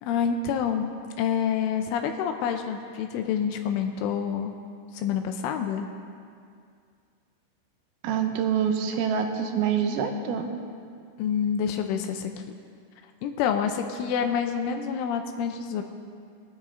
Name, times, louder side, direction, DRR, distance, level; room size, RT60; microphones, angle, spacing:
voice 1, 0.0-0.9 1.2-4.6 4.9-5.9 11.2-12.4 13.2-15.8, left 7 dB, 80° left, 5 dB, 3.0 m, -27 dB
voice 2, 8.0-10.5, right 7 dB, 90° right, 4 dB, 3.6 m, -26 dB
21.5 x 9.8 x 3.7 m, 2.3 s
omnidirectional pair, 5.9 m